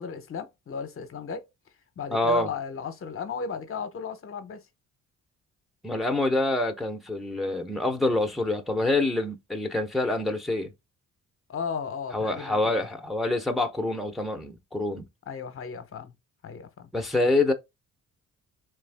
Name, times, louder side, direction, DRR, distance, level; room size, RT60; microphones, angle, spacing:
voice 1, 0.0-1.5 2.0-4.6 11.5-12.9 15.3-16.1 16.4-16.9, left 6 dB, 45° left, 0.8 m, -35 dB
voice 2, 2.1-2.5 5.8-10.7 12.1-15.1 16.9-17.5, left 2 dB, ahead, 0.8 m, -26 dB
3.5 x 3.3 x 3.4 m
cardioid pair, 90°, 30 cm